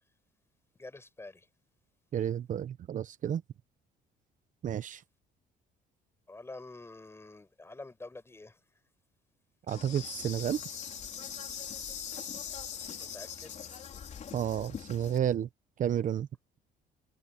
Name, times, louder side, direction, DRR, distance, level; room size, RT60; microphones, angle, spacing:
voice 1, 0.8-1.4 6.3-8.5 13.0-13.6, left 2 dB, 15° left, 5.9 m, -47 dB
voice 2, 2.1-3.4 4.6-5.0 9.7-10.6 14.3-15.5 15.8-16.3, right 10 dB, 50° right, 1.0 m, -31 dB
Insect, 9.7-15.2, left 7 dB, 45° left, 4.0 m, -41 dB
cardioid pair, 110°, 17 cm